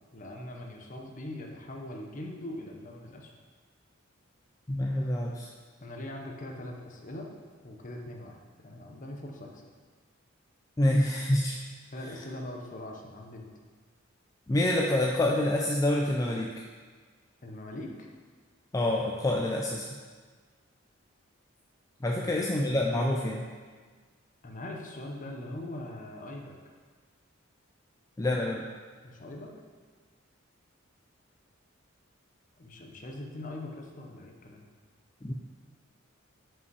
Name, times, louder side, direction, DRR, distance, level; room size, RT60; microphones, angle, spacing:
voice 1, 0.1-3.3 5.8-7.3 7.6-8.4 8.6-9.6 11.9-13.5 17.4-18.1 22.1-22.4 24.4-26.6 29.0-29.5 32.6-34.7, left 1 dB, 40° left, 2 dB, 0.8 m, -41 dB
voice 2, 4.7-5.5 10.8-11.6 14.5-16.6 18.7-19.9 22.0-23.5 28.2-28.7 35.2-35.3, left 1 dB, 15° left, -1 dB, 0.4 m, -27 dB
5.6 x 5.3 x 4.7 m, 1.5 s
head